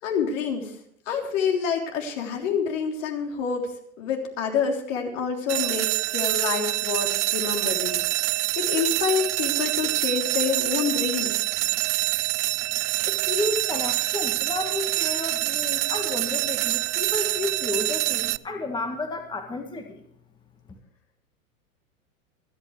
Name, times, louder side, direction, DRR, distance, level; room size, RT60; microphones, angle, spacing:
voice 1, 0.0-0.7 1.1-3.7 4.0-8.0 8.3-11.5, left 6 dB, 65° left, 2 dB, 3.6 m, -27 dB
sound 1, 5.5-18.4, right 20 dB, 60° right, 0.5 m, -26 dB
voice 2, 13.1-20.0, left 2 dB, 10° left, 5 dB, 1.7 m, -31 dB
26.0 x 8.9 x 3.3 m, 0.70 s
hypercardioid pair, 110°, 41 cm